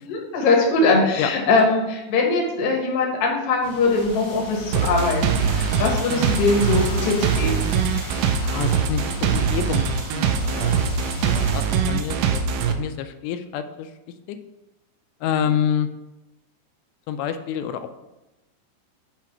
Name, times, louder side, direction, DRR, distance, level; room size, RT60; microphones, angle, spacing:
voice 1, 0.0-7.7, left 3 dB, 65° left, -1 dB, 1.5 m, -21 dB
sound 1, 3.6-11.7, left 1 dB, 40° left, 0.9 m, -35 dB
sound 2, 4.7-12.7, right 7 dB, 80° right, 2.6 m, -22 dB
voice 2, 8.4-10.7 11.0-13.9 14.3-14.4 15.2-15.9 17.1-18.1, left 9 dB, 85° left, 8 dB, 2.7 m, -28 dB
7.3 x 3.1 x 5.8 m, 1.0 s
omnidirectional pair, 4.9 m